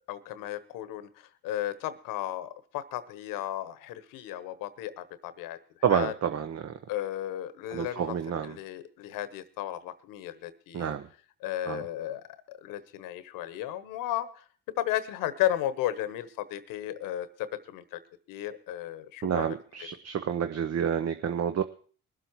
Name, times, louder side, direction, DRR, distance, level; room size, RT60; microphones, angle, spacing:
voice 1, 0.1-5.6 5.9-6.1 6.9-10.9 11.4-14.4 14.8-18.0 18.3-19.6, left 13 dB, 90° left, 14 dB, 1.1 m, -34 dB
voice 2, 5.8-6.7 7.7-8.6 10.7-11.1 11.7-11.8 19.2-21.6, right 8 dB, 50° right, 9 dB, 0.9 m, -29 dB
21.5 x 7.6 x 4.6 m, 0.42 s
supercardioid pair, 70°, 32 cm